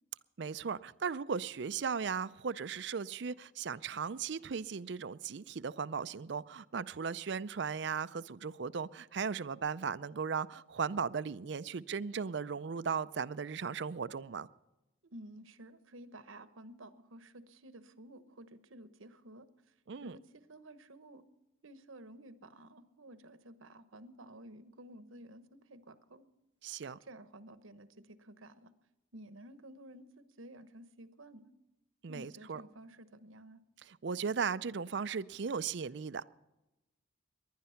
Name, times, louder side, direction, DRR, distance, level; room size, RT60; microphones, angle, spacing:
voice 1, 0.4-14.5 19.9-20.2 26.6-27.0 32.0-32.6 33.8-36.3, right 6 dB, 60° right, 0.5 m, -37 dB
voice 2, 15.0-19.5 20.0-21.2 21.6-26.3 27.0-28.7 29.1-31.5 32.1-33.6, right 1 dB, 85° right, 1.1 m, -53 dB
19.5 x 11.5 x 5.7 m
head